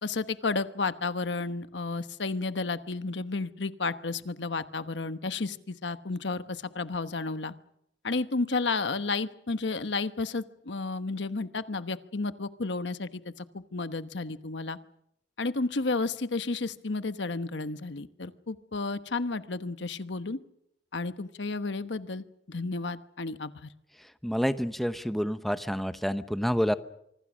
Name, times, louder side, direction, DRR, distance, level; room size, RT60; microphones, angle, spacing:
voice 1, 0.0-7.5 8.0-14.8 15.4-20.4 20.9-23.7, left 3 dB, 90° left, 12 dB, 1.1 m, -32 dB
voice 2, 24.2-26.8, equal, ahead, 11 dB, 0.8 m, -28 dB
25.5 x 24.5 x 6.3 m, 0.77 s
head